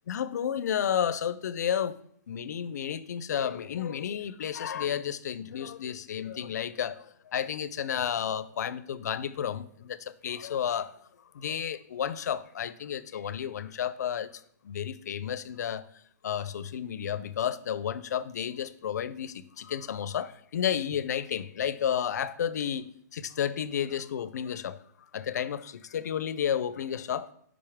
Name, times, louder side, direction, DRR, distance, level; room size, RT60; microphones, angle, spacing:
voice 1, 0.1-2.0 2.3-10.9 11.3-14.3 14.6-15.8 16.2-22.9 23.1-24.8 25.1-27.3, left 9 dB, 65° left, 16 dB, 0.5 m, -32 dB
8.6 x 5.3 x 3.5 m, 0.66 s
hypercardioid pair, 165°, 10 cm